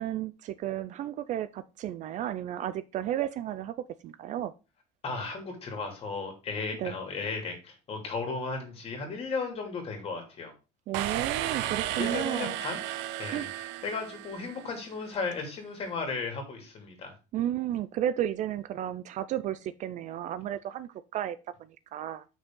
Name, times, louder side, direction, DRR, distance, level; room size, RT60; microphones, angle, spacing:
voice 1, 0.0-4.5 6.8-7.0 10.9-12.5 13.3-13.5 17.3-22.2, right 11 dB, 40° right, 0.5 m, -33 dB
voice 2, 5.0-10.5 12.0-12.8 13.2-17.2, left 4 dB, 30° left, 2.7 m, -35 dB
sound 1, 10.9-14.7, right 12 dB, 70° right, 0.9 m, -33 dB
8.0 x 6.1 x 3.7 m
cardioid pair, 155°, 19 cm